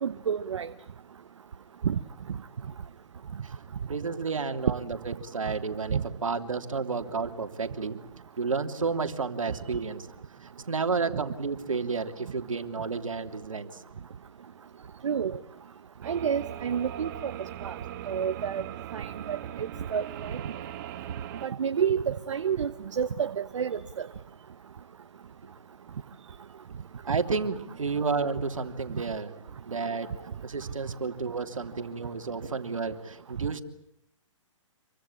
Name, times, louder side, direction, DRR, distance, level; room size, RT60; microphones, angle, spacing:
voice 1, 0.0-0.7 1.8-2.0 5.9-6.0 15.0-15.4 16.0-17.3 17.6-17.7 18.1-18.6 18.9-20.4 21.4-24.1, right 7 dB, 70° right, 11 dB, 1.2 m, -29 dB
voice 2, 3.9-8.0 8.4-10.1 10.4-13.8 27.1-29.3 29.7-30.1 30.4-33.6, right 4 dB, 85° right, 7 dB, 3.2 m, -31 dB
sound 1, 16.0-21.5, right 11 dB, 40° right, 1.7 m, -40 dB
27.0 x 24.0 x 8.6 m, 0.75 s
hypercardioid pair, 140°, 16 cm